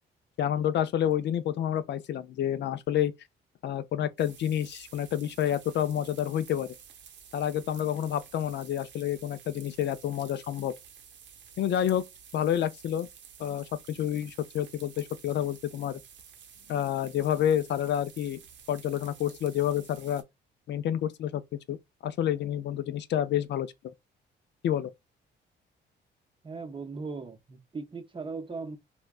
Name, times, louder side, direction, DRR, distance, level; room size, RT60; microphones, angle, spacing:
voice 1, 0.4-3.1 3.6-6.7 7.3-10.7 11.6-12.0 12.3-13.1 13.4-16.0 16.7-18.4 18.7-20.2 20.7-21.4 21.7-21.8 22.0-23.7 24.6-24.9, left 10 dB, 60° left, 0.4 m, -29 dB
sound 1, 4.2-20.2, right 7 dB, 70° right, 0.8 m, -52 dB
voice 2, 26.4-28.8, right 4 dB, 25° right, 0.7 m, -38 dB
3.5 x 2.2 x 2.3 m
cardioid pair, 90°, 20 cm